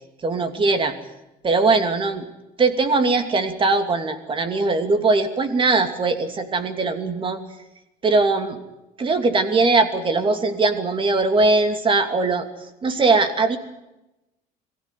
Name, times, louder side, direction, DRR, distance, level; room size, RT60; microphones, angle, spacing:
voice 1, 0.2-0.9 1.4-2.2 2.6-7.4 8.0-8.6 9.0-12.4 12.8-13.6, right 3 dB, 30° right, 7 dB, 2.8 m, -20 dB
22.5 x 16.0 x 9.4 m, 0.97 s
cardioid pair, 115°, 17 cm